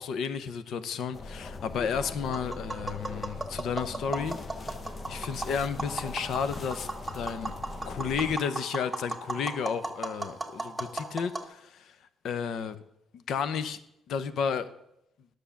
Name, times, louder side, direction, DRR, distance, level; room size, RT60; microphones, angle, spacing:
voice 1, 0.0-4.4 5.1-6.9 7.1-7.5 7.9-12.0 12.2-12.8 13.1-13.8 14.1-14.7, left 6 dB, 75° left, 13 dB, 0.8 m, -32 dB
sound 1, 1.1-8.4, left 3 dB, 40° left, 0.7 m, -41 dB
Tap, 2.2-11.5, right 2 dB, 15° right, 1.8 m, -37 dB
10.5 x 6.6 x 7.1 m, 0.80 s
cardioid pair, 90°, 0 cm